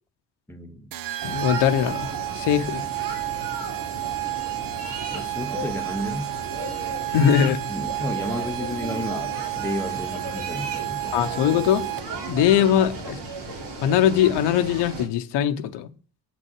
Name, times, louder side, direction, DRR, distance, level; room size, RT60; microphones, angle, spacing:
voice 1, 0.5-0.9 5.1-6.3 7.7-11.5 13.0-13.2, left 1 dB, 5° left, 0.9 m, -32 dB
sound 1, 0.9-12.3, right 20 dB, 55° right, 0.5 m, -32 dB
voice 2, 1.2-2.9 7.1-7.6 11.1-11.8 12.3-13.2 13.8-15.9, left 9 dB, 85° left, 0.9 m, -21 dB
sound 2, 1.2-15.1, right 2 dB, 85° right, 2.7 m, -35 dB
7.6 x 6.1 x 4.6 m
cardioid pair, 100°, 41 cm